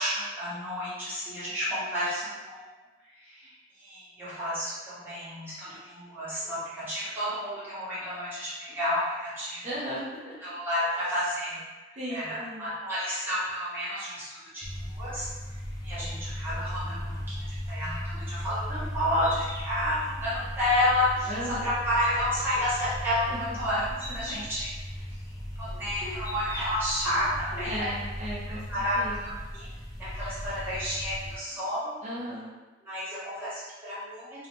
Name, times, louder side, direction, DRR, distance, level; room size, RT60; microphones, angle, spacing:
voice 1, 0.0-2.7 3.1-9.7 10.4-11.6 11.9-15.3 15.8-24.7 25.6-27.9 28.7-29.7 30.0-31.9 32.8-34.5, left 1 dB, 10° right, -12 dB, 0.9 m, -31 dB
voice 2, 9.6-10.4 12.0-12.7 21.3-21.7 23.3-23.4 24.3-24.4 27.6-29.2 32.0-32.5, equal, 35° right, -5 dB, 0.5 m, -36 dB
sound 1, 14.6-31.4, equal, 20° left, 0.3 m, -37 dB
2.8 x 2.0 x 3.0 m, 1.2 s
head